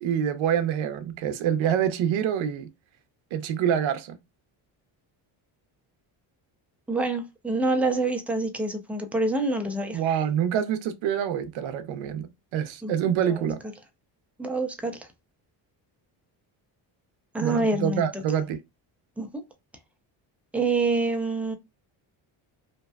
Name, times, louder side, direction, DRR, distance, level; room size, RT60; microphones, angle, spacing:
voice 1, 0.0-2.7 3.3-4.2 9.9-12.3 12.5-13.6 17.4-18.6, right 9 dB, 70° right, 0.6 m, -26 dB
voice 2, 6.9-10.0 12.8-12.9 13.3-13.5 14.4-15.1 17.3-18.2 19.2-19.4 20.5-21.5, right 2 dB, 5° right, 0.5 m, -26 dB
2.6 x 2.1 x 2.3 m
cardioid pair, 80°, 49 cm